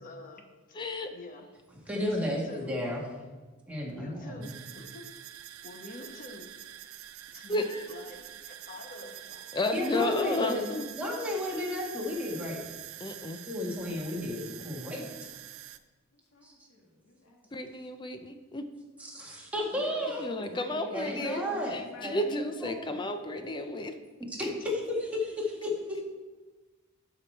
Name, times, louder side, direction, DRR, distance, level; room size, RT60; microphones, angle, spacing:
voice 1, 0.0-0.8 1.1-1.5 1.9-2.7 3.8-5.1 5.6-6.5 7.3-8.3 8.7-9.2 9.7-10.3 19.7-21.4 24.6-24.7, left 1 dB, 40° left, 4 dB, 1.0 m, -46 dB
voice 2, 0.7-1.1 7.5-7.8 9.5-10.9 13.0-13.4 17.5-18.7 20.2-21.4 21.7-24.0, left 2 dB, 20° left, 8 dB, 0.5 m, -32 dB
voice 3, 1.9-3.0 3.7-4.5 9.7-10.6 10.9-12.6 13.5-15.1 16.4-16.5 19.0-20.2 20.9-21.7 22.0-22.8 24.3-26.0, left 1 dB, 5° right, -3 dB, 1.7 m, -33 dB
sound 1, 4.4-15.8, right 12 dB, 75° right, 0.5 m, -46 dB
voice 4, 8.7-10.1 16.1-17.6 21.1-22.5, left 2 dB, 80° left, -1 dB, 2.0 m, -53 dB
12.0 x 5.0 x 4.4 m, 1.3 s
head